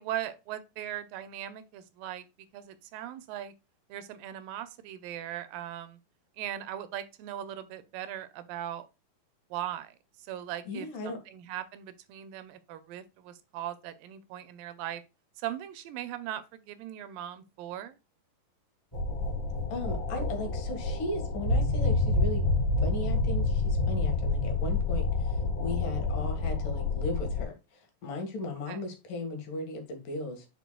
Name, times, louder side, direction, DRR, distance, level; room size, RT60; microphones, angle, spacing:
voice 1, 0.0-2.3 2.5-3.5 3.9-6.0 6.4-8.9 9.5-15.0 15.4-18.0 25.9-26.1 28.7-28.8, right 11 dB, 85° right, 2.5 m, -39 dB
voice 2, 10.7-11.2 19.7-22.5 22.8-30.5, left 2 dB, 70° left, 3.1 m, -37 dB
sound 1, 18.9-27.4, left 3 dB, 10° left, 1.7 m, -28 dB
9.2 x 4.9 x 2.2 m
omnidirectional pair, 4.0 m